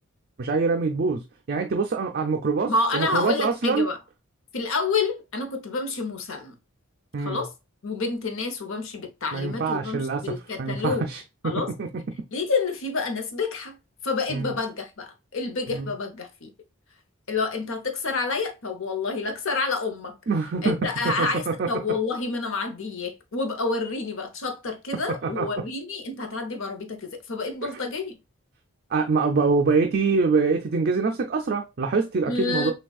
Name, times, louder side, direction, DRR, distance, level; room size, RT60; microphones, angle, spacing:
voice 1, 0.4-1.2 1.5-3.9 7.1-7.4 9.3-12.0 14.3-14.5 15.7-15.9 20.3-21.7 25.2-25.4 28.9-32.7, right 4 dB, 45° right, 0.4 m, -25 dB
voice 2, 2.7-4.0 4.5-6.5 7.2-7.5 7.8-11.1 11.4-11.7 12.3-13.8 14.0-16.5 17.3-20.2 20.6-28.2 32.3-32.7, left 3 dB, 60° left, 0.8 m, -28 dB
6.1 x 2.3 x 2.3 m
head